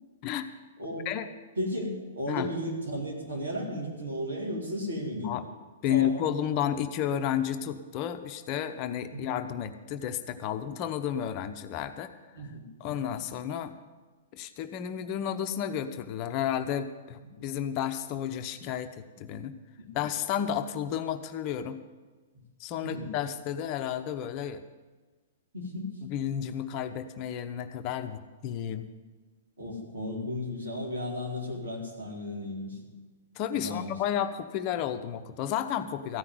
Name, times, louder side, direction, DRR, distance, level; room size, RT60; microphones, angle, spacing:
voice 1, 0.8-1.1 1.6-5.4 5.9-6.2 9.1-9.3 12.3-13.1 17.4-17.5 19.8-20.0 22.8-23.1 25.5-25.9 29.6-32.8 33.5-34.0, left 1 dB, 80° right, -2 dB, 3.9 m, -35 dB
voice 2, 5.8-12.1 12.8-13.7 14.3-19.6 19.9-21.8 22.6-24.6 26.1-28.9 33.4-36.2, left 9 dB, 40° left, 9 dB, 0.8 m, -32 dB
14.5 x 5.9 x 9.5 m, 1.3 s
hypercardioid pair, 115°, 0 cm